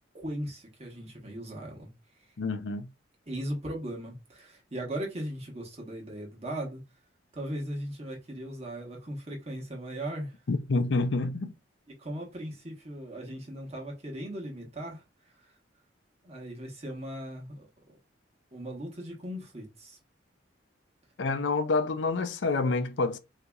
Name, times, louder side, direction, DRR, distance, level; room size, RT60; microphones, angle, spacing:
voice 1, 0.1-1.9 3.3-6.8 7.3-10.4 12.0-15.0 16.2-18.0 18.5-20.0, right 1 dB, 35° right, 1.2 m, -38 dB
voice 2, 2.4-2.9 10.5-11.5 21.2-23.2, left 3 dB, 70° left, 0.5 m, -28 dB
4.0 x 2.8 x 2.3 m
head